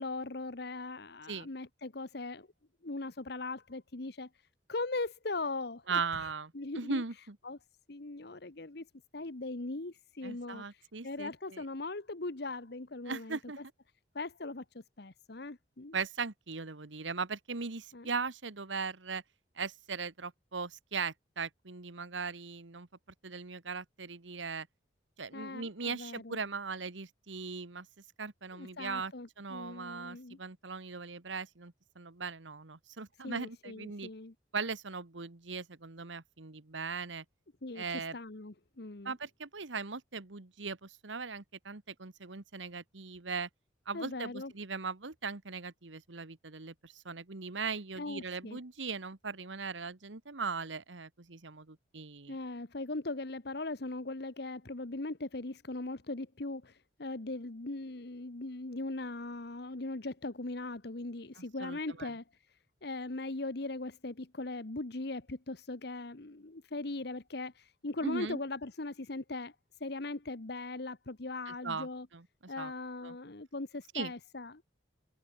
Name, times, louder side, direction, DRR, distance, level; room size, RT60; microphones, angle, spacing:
voice 1, 0.0-2.5 2.8-4.3 4.7-7.0 7.4-7.6 7.9-8.9 9.1-13.6 14.1-15.9 17.9-18.1 25.3-26.4 28.5-30.4 33.2-34.3 37.6-39.1 43.9-44.5 48.0-48.6 52.3-62.2 62.8-69.5 69.8-72.1 72.5-74.6, left 2 dB, 60° left, 1.2 m, -40 dB
voice 2, 5.9-7.4 10.2-11.6 13.1-13.6 15.9-19.2 19.6-22.9 23.2-24.7 25.2-27.9 28.2-29.1 29.4-34.1 34.5-37.2 37.7-38.2 39.0-43.5 43.8-52.3 61.4-62.1 68.0-68.4 71.5-71.9 72.1-72.2 72.6-72.7 73.0-73.1 73.9-74.1, right 4 dB, 85° right, 1.5 m, -39 dB
head